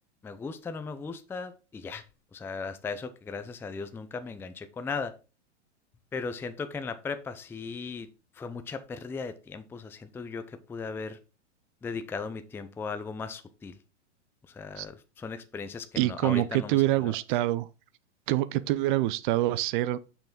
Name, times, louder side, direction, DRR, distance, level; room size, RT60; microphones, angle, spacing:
voice 1, 0.2-2.0 2.3-5.2 6.1-8.1 8.4-11.2 11.8-13.8 14.5-17.2, left 4 dB, 5° left, 0.5 m, -37 dB
voice 2, 16.0-17.7 18.3-20.1, right 16 dB, 45° right, 0.6 m, -26 dB
6.7 x 5.8 x 3.7 m
hypercardioid pair, 110°, 35 cm